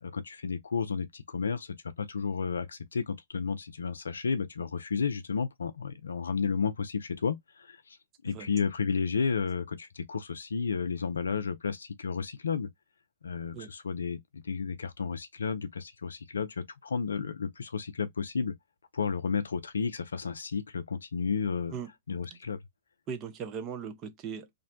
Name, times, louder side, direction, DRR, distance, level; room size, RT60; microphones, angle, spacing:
voice 1, 0.0-8.0 8.2-12.7 13.2-18.5 18.9-21.7 22.1-22.6, left 5 dB, 85° left, 0.4 m, -32 dB
voice 2, 23.1-24.5, right 6 dB, 30° right, 0.6 m, -38 dB
2.5 x 2.1 x 2.6 m
hypercardioid pair, 115°, 0 cm